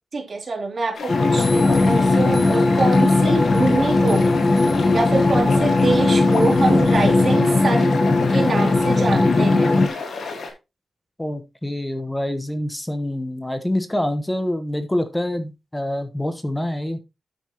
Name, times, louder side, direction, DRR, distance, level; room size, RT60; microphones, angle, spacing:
voice 1, 0.1-4.3 4.9-8.0 8.3-9.7, right 3 dB, 50° right, 3.1 m, -25 dB
sound 1, 0.9-10.5, left 4 dB, 90° left, 2.7 m, -32 dB
sound 2, 1.1-9.9, left 3 dB, 40° left, 1.1 m, -18 dB
sound 3, 1.4-7.1, left 1 dB, 55° left, 3.9 m, -37 dB
voice 2, 11.2-17.0, left 1 dB, 10° left, 1.1 m, -26 dB
9.3 x 8.2 x 3.0 m
wide cardioid pair, 115°, 0 cm